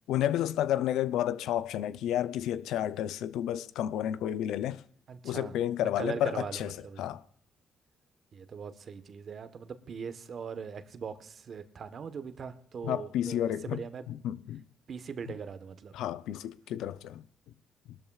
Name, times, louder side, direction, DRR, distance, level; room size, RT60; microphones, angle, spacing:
voice 1, 0.1-4.8 5.2-7.2 12.8-13.8 14.1-14.6 15.9-17.2, left 11 dB, 85° left, 0.4 m, -31 dB
voice 2, 5.1-7.2 8.3-14.0 14.9-16.0, right 6 dB, 55° right, 1.0 m, -41 dB
21.5 x 12.5 x 2.3 m
cardioid pair, 90°, 0 cm